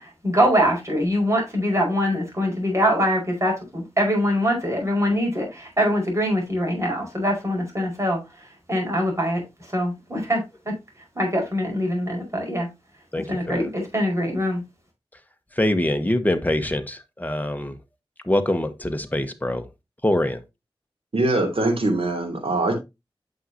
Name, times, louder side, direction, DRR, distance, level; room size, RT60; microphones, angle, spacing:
voice 1, 0.0-10.7 11.1-12.7 13.2-14.6, equal, 30° right, 5.0 m, -23 dB
voice 2, 13.1-13.6 15.6-17.7 18.3-19.6 20.0-20.4, left 1 dB, 15° left, 1.2 m, -24 dB
voice 3, 21.1-22.7, right 2 dB, 70° right, 2.9 m, -22 dB
9.0 x 6.4 x 2.8 m
wide cardioid pair, 55°, 10 cm